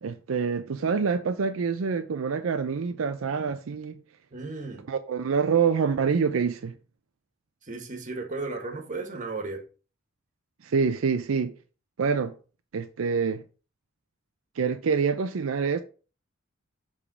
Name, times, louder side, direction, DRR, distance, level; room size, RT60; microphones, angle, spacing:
voice 1, 0.0-4.0 4.9-6.7 10.6-11.5 12.0-12.3 12.7-13.4 14.6-15.8, right 5 dB, 80° right, 0.5 m, -26 dB
voice 2, 4.3-4.8 7.6-9.6, right 3 dB, 40° right, 1.4 m, -35 dB
7.1 x 3.5 x 4.8 m
head